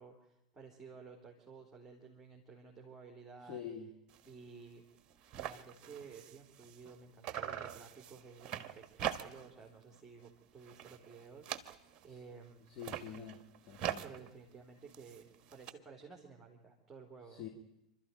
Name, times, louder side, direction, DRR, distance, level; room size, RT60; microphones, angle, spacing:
voice 1, 0.0-3.6 4.2-4.9 5.4-12.6 14.0-17.5, right 5 dB, 5° right, 0 dB, 3.8 m, -54 dB
voice 2, 3.5-3.9 12.8-13.4 13.7-14.0 17.4-17.5, left 8 dB, 35° left, 3 dB, 3.0 m, -45 dB
sound 1, 4.1-4.3 4.7-4.8 5.0-7.0 7.2-9.6 9.9-10.3 10.6-12.1 12.7-15.7, right 10 dB, 35° right, 1.5 m, -43 dB
29.0 x 13.0 x 9.3 m, 0.89 s
figure-of-eight pair, 90°, 3 cm